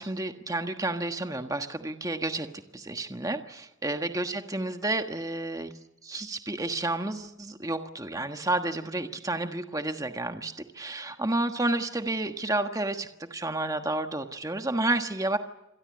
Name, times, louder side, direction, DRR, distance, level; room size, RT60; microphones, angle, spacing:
voice 1, 0.0-2.5 2.7-5.7 6.0-15.4, right 2 dB, 15° right, 7 dB, 1.3 m, -30 dB
26.5 x 18.0 x 8.5 m, 0.96 s
head